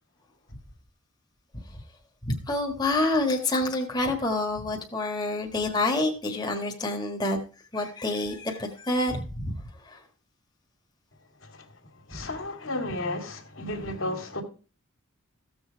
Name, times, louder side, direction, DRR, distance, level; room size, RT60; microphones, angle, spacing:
voice 1, 2.2-7.4 7.7-9.6 9.8-10.0, left 2 dB, 20° left, 1.6 m, -27 dB
voice 2, 11.4-14.4, left 2 dB, 60° left, 2.2 m, -34 dB
15.0 x 7.1 x 4.7 m
head